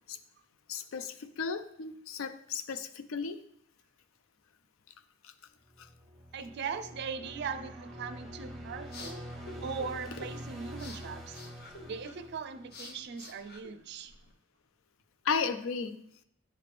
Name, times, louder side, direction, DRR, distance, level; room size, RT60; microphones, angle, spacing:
voice 1, 0.7-3.4 15.3-16.0, left 5 dB, 75° left, 12 dB, 0.4 m, -34 dB
sound 1, 5.7-13.1, equal, ahead, 0.8 m, -45 dB
voice 2, 6.3-9.3 9.6-11.4 11.9-14.1, right 5 dB, 55° right, 11 dB, 0.4 m, -39 dB
sound 2, 8.6-14.3, left 2 dB, 50° left, 0.7 m, -50 dB
9.5 x 3.3 x 3.4 m, 0.73 s
head